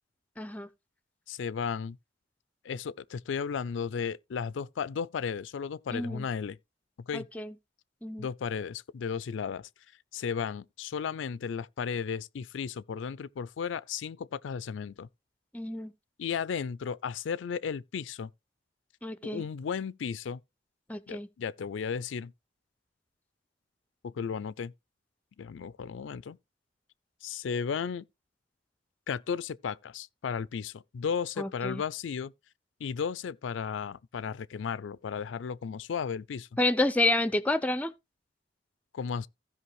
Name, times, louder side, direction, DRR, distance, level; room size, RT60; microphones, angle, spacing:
voice 1, 0.4-0.7 5.9-6.3 7.1-7.5 8.0-8.3 15.5-15.9 19.0-19.4 20.9-21.3 31.4-31.8 36.6-37.9, left 2 dB, 10° left, 0.5 m, -29 dB
voice 2, 1.3-2.0 2.6-6.6 7.1-7.3 8.2-9.7 10.1-15.1 16.2-18.3 19.3-20.4 21.1-22.3 24.0-24.7 25.4-26.4 27.2-28.0 29.1-32.3 32.8-36.5 38.9-39.3, left 6 dB, 90° left, 0.4 m, -34 dB
15.5 x 5.3 x 3.1 m
head